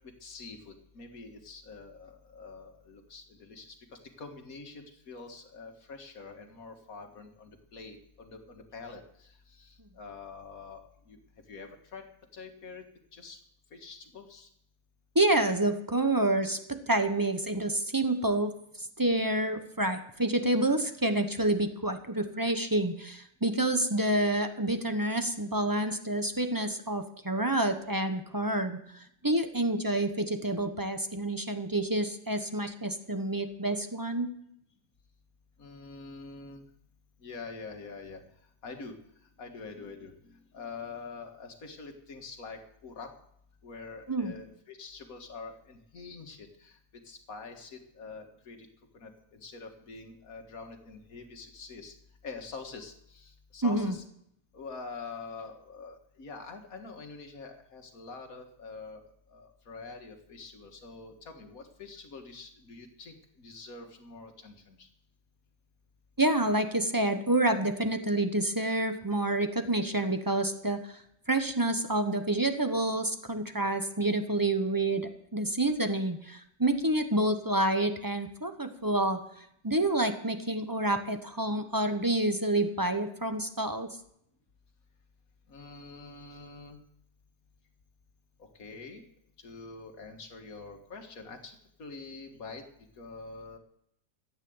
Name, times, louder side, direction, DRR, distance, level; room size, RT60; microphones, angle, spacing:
voice 1, 0.2-11.2 11.5-12.1 12.3-12.8 13.1-13.4 13.7-14.5 35.6-36.6 37.2-38.2 38.6-39.0 39.4-43.1 43.6-46.8 47.0-48.6 48.9-51.9 52.2-54.0 54.5-64.9 85.5-86.8 88.4-89.0 89.4-92.6 93.0-93.6, left 4 dB, 55° left, 5 dB, 2.1 m, -45 dB
voice 2, 15.1-18.5 18.8-34.3 44.1-44.3 53.6-54.0 66.2-70.9 71.3-79.2 79.6-83.9, right 1 dB, 15° right, 7 dB, 0.8 m, -28 dB
14.0 x 9.2 x 7.8 m, 0.72 s
omnidirectional pair, 1.8 m